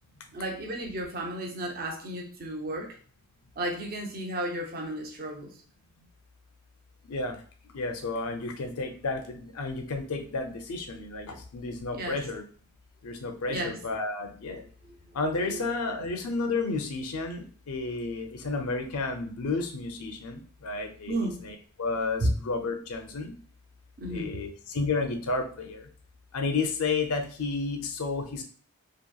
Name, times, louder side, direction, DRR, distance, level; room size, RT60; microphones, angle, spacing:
voice 1, 0.3-3.0 3.6-5.5 11.9-12.2 13.5-13.7 15.0-15.1 15.4-15.8 21.1-21.4 22.2-22.3 24.0-24.4, right 1 dB, 40° right, 1 dB, 0.5 m, -33 dB
voice 2, 7.7-12.4 13.0-14.6 15.1-23.3 24.1-25.9 26.3-28.4, left 3 dB, 75° left, 5 dB, 0.5 m, -32 dB
2.8 x 2.6 x 2.2 m, 0.43 s
head